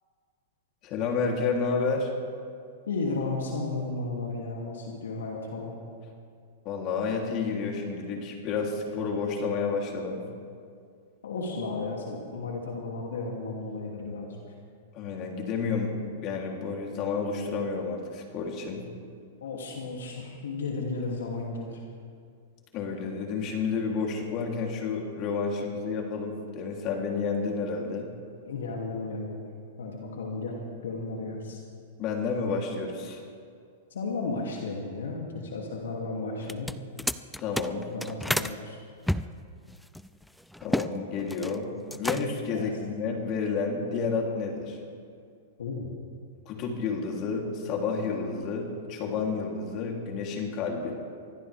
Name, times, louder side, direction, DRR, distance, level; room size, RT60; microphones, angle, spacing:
voice 1, 0.8-2.1 6.6-10.2 14.9-18.8 22.7-28.1 32.0-33.2 37.4-37.9 40.6-41.7 41.9-44.8 46.4-51.0, left 4 dB, 40° left, 0 dB, 3.1 m, -30 dB
voice 2, 2.9-5.7 11.2-14.4 19.4-21.8 28.4-29.4 29.8-31.6 33.9-36.7 37.9-38.8 42.5-42.7 45.6-45.9, left 3 dB, 85° left, -1 dB, 2.6 m, -34 dB
sound 1, 36.4-38.6 39.1-40.9 41.2-41.6 41.9-42.5, left 1 dB, ahead, 0.4 m, -31 dB
24.0 x 16.0 x 3.5 m, 2.2 s
hypercardioid pair, 125°, 0 cm